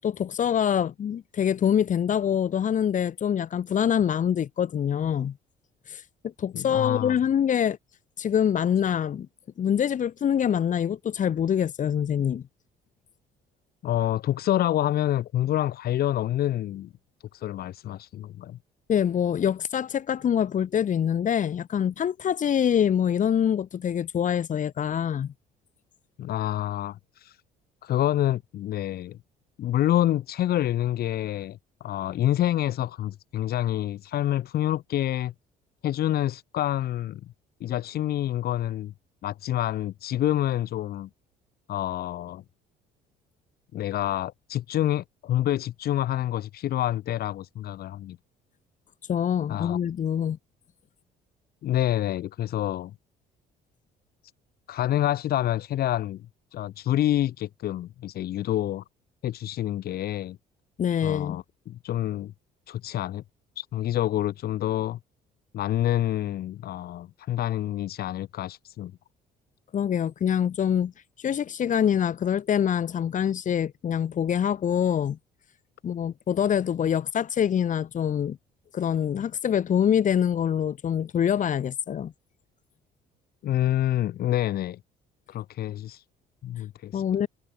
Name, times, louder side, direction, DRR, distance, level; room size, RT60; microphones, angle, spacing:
voice 1, 0.0-5.3 5.9-6.1 6.4-7.8 8.2-9.3 9.6-12.4 18.9-25.3 49.1-50.4 60.8-61.4 69.7-70.9 71.2-75.2 75.8-78.4 78.7-82.1 86.9-87.3, left 9 dB, 50° left, 7.7 m, -25 dB
voice 2, 6.5-7.2 13.8-16.9 17.3-18.6 26.2-27.4 27.8-29.2 29.6-35.3 35.8-37.2 37.6-38.9 39.2-41.1 41.7-42.4 43.7-48.2 49.5-49.8 51.6-52.9 54.7-56.2 56.5-58.8 59.2-60.4 61.0-62.3 62.7-63.2 63.6-65.0 65.5-68.9 83.4-84.8 85.3-86.0 86.4-87.0, left 12 dB, 65° left, 5.5 m, -27 dB
cardioid pair, 110°, 17 cm